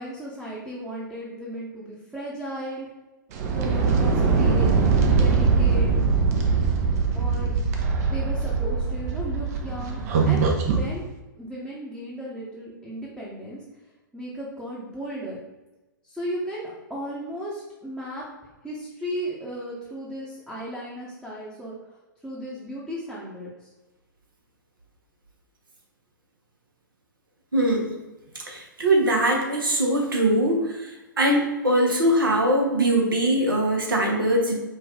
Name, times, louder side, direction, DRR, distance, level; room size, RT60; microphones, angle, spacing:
voice 1, 0.0-2.9 3.6-4.7 5.1-5.9 7.1-7.5 8.1-11.1 11.4-13.6 14.1-15.4 16.0-18.2 18.6-21.8 22.2-23.7, equal, 5° right, -6 dB, 0.8 m, -35 dB
sound 1, 3.3-10.9, right 4 dB, 45° right, 0.7 m, -22 dB
voice 2, 27.5-27.9 28.5-30.9 31.2-34.6, right 1 dB, 80° right, 1 dB, 1.1 m, -22 dB
5.2 x 2.5 x 3.6 m, 1.1 s
figure-of-eight pair, 110°, 11 cm